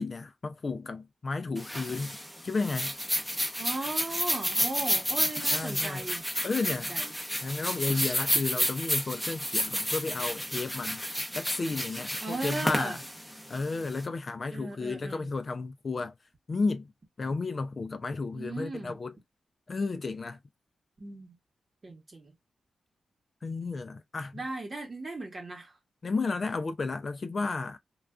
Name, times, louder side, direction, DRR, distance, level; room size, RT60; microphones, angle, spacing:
voice 1, 0.0-2.2 2.4-2.9 5.5-6.0 6.4-6.9 7.4-11.0 11.3-13.0 13.5-16.1 16.5-16.9 17.2-19.1 19.7-20.4 23.4-24.3 26.0-27.8, left 3 dB, 45° left, 0.3 m, -32 dB
sound 1, 1.6-14.0, equal, 5° left, 0.7 m, -31 dB
voice 2, 3.6-6.2 6.5-7.1 12.2-13.0 14.5-15.3 18.3-18.9 21.0-21.3 21.8-22.3 24.3-25.7, right 2 dB, 40° right, 1.0 m, -37 dB
2.3 x 2.2 x 2.3 m
cardioid pair, 75°, 0 cm